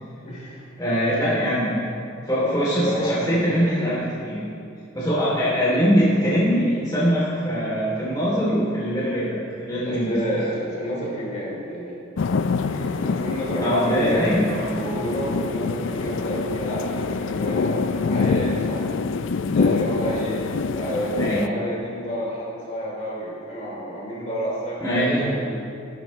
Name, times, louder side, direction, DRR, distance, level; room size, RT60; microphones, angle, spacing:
voice 1, 0.2-0.7 2.8-3.2 3.6-4.0 9.8-12.0 12.6-14.4 14.7-18.9 19.5-25.6, equal, 35° left, -5 dB, 3.2 m, -30 dB
voice 2, 0.8-1.8 2.3-4.4 4.9-10.2 13.6-14.8 21.2-21.5 24.8-25.3, equal, 20° left, -8 dB, 2.9 m, -22 dB
sound 1, 12.2-21.5, left 4 dB, 65° left, 0.4 m, -25 dB
14.5 x 12.5 x 3.2 m, 2.6 s
head